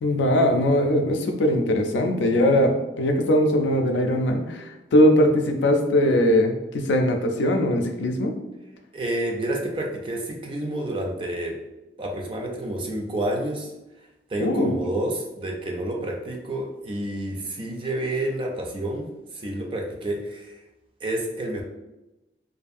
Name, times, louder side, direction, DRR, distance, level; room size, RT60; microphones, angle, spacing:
voice 1, 0.0-4.6 4.9-8.3 14.4-14.8, left 1 dB, 80° left, 4 dB, 0.4 m, -20 dB
voice 2, 8.9-11.6 12.0-13.7 14.3-19.1 19.3-20.5 21.0-21.6, right 1 dB, 30° right, 0 dB, 0.4 m, -29 dB
2.6 x 2.5 x 2.4 m, 0.99 s
head